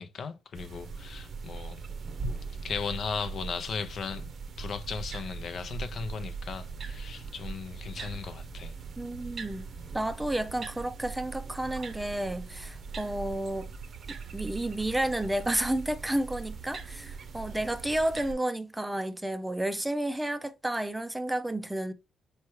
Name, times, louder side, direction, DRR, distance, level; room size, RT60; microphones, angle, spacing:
voice 1, 0.0-1.8 2.6-4.3 4.6-8.7, left 6 dB, 55° left, 0.5 m, -37 dB
sound 1, 0.5-18.3, right 5 dB, 55° right, 0.7 m, -40 dB
voice 2, 9.0-9.7 9.9-13.7 14.3-21.9, right 1 dB, 10° right, 0.4 m, -31 dB
4.6 x 3.1 x 3.0 m
cardioid pair, 90°, 0 cm